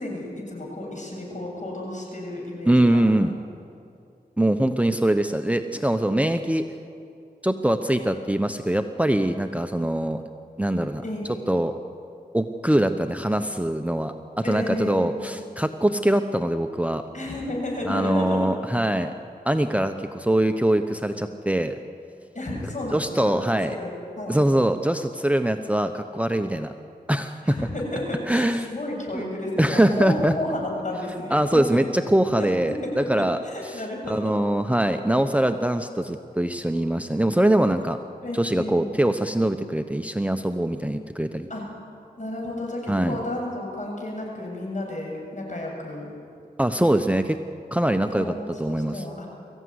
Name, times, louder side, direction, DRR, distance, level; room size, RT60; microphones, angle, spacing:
voice 1, 0.0-3.1 11.0-11.4 14.4-15.4 17.1-18.5 22.3-23.9 24.2-24.4 27.4-31.4 31.7-31.8 32.4-34.3 38.2-39.0 41.5-41.6 42.2-46.1 48.1-49.3, left 1 dB, 50° left, -1 dB, 7.4 m, -32 dB
voice 2, 2.7-3.4 4.4-6.6 7.4-10.2 10.6-11.0 11.5-11.7 12.3-14.1 14.4-17.0 17.9-19.1 19.4-21.8 22.9-23.7 24.3-26.7 27.1-27.6 28.3-28.7 29.1-29.2 29.6-30.3 31.3-33.4 34.1-38.0 38.3-41.5 42.9-43.2 46.6-47.4 47.7-48.3 48.6-49.0, right 1 dB, 10° right, 8 dB, 1.0 m, -23 dB
23.0 x 15.0 x 9.7 m, 2.4 s
wide cardioid pair, 55°, 16 cm